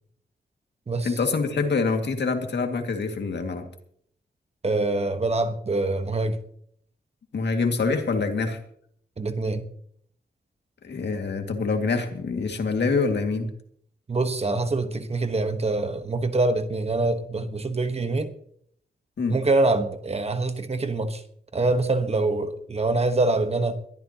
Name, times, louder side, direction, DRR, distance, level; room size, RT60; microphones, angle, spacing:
voice 1, 1.0-3.6 7.3-8.6 10.8-13.5 19.2-19.4, left 4 dB, 75° left, 2.2 m, -25 dB
voice 2, 4.6-6.4 9.2-9.6 14.1-18.3 19.3-21.2 21.5-23.8, right 2 dB, 35° right, 1.2 m, -25 dB
22.0 x 13.5 x 2.9 m
wide cardioid pair, 130°, 18 cm